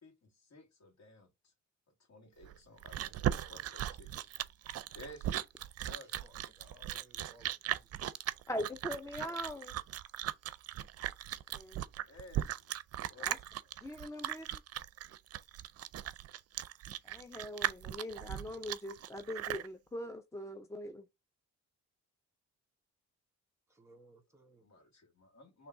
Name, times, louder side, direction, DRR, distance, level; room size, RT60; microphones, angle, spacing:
voice 1, 0.0-1.5 1.9-4.2 4.9-5.3 5.8-6.2 12.0-12.7 13.1-13.4 24.6-25.7, left 1 dB, 65° left, 1.9 m, -55 dB
Chewing mastication, 2.4-19.7, right 12 dB, 55° right, 0.5 m, -38 dB
voice 2, 5.9-7.5 7.8-8.0 23.7-24.7, right 1 dB, 10° right, 1.7 m, -62 dB
voice 3, 8.5-9.7 11.5-11.8 13.2-13.4 13.8-14.6 17.1-21.0, left 1 dB, 10° left, 0.4 m, -41 dB
3.6 x 3.1 x 4.6 m
cardioid pair, 90°, 30 cm